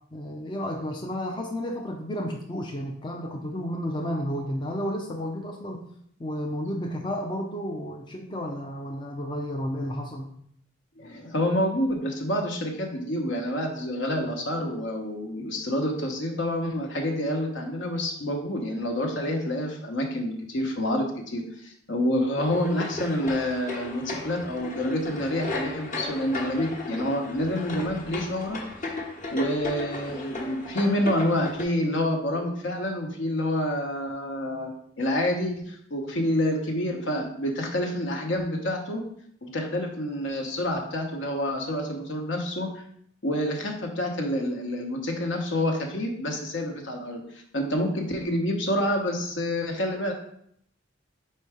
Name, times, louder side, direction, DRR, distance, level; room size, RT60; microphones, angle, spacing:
voice 1, 0.1-5.8 6.2-10.3, equal, 25° left, 2 dB, 0.5 m, -32 dB
voice 2, 11.0-28.6 29.3-34.7 35.0-39.0 39.4-42.8 43.2-50.1, left 1 dB, 65° left, 2 dB, 1.1 m, -28 dB
sound 1, 22.4-31.6, left 2 dB, 40° left, 1.1 m, -36 dB
4.5 x 4.2 x 4.9 m, 0.68 s
head